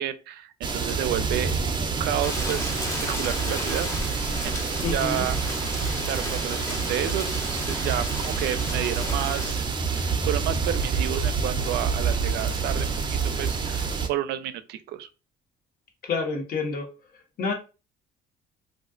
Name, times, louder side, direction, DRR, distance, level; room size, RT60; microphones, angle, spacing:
voice 1, 0.0-1.5 1.8-5.4 6.0-9.7 9.9-15.1, right 12 dB, 80° right, 0.4 m, -31 dB
sound 1, 0.6-14.1, right 5 dB, 25° right, 0.5 m, -27 dB
Rain, 2.2-9.5, left 1 dB, 15° left, 0.7 m, -34 dB
voice 2, 4.8-5.2 16.0-16.9 17.4-17.5, left 4 dB, 60° left, 1.1 m, -28 dB
2.5 x 2.4 x 3.6 m
cardioid pair, 110°, 17 cm